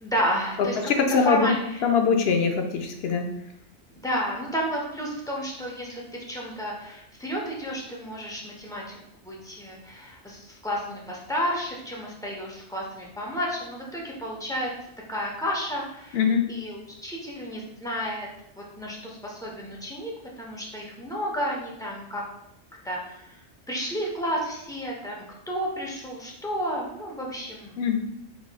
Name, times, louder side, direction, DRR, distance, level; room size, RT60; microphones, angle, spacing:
voice 1, 0.0-1.8 3.9-14.7 15.1-16.2 16.5-18.3 18.6-22.2 22.8-27.8, equal, 5° left, -3 dB, 0.6 m, -32 dB
voice 2, 0.8-1.5 1.8-3.2 16.1-16.4 27.8-28.0, left 5 dB, 65° left, 5 dB, 0.7 m, -22 dB
5.3 x 3.0 x 2.2 m, 0.79 s
omnidirectional pair, 1.2 m